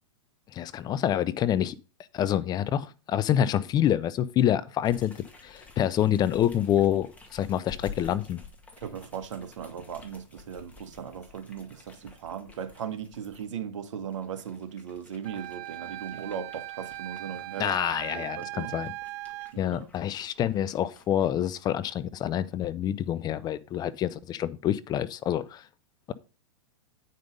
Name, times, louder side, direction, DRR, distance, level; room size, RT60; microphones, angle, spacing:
voice 1, 0.5-1.8 2.1-8.4 17.6-18.9 19.6-25.6, left 10 dB, 25° left, 0.5 m, -27 dB
sound 1, 4.8-13.5 14.0-21.3, left 5 dB, 10° left, 2.1 m, -51 dB
voice 2, 8.8-17.8 18.1-18.7 19.5-19.9, right 8 dB, 70° right, 1.4 m, -38 dB
Wind instrument woodwind instrument, 15.2-19.5, right 17 dB, 45° right, 0.6 m, -39 dB
9.4 x 5.3 x 5.2 m
hypercardioid pair, 120°, 16 cm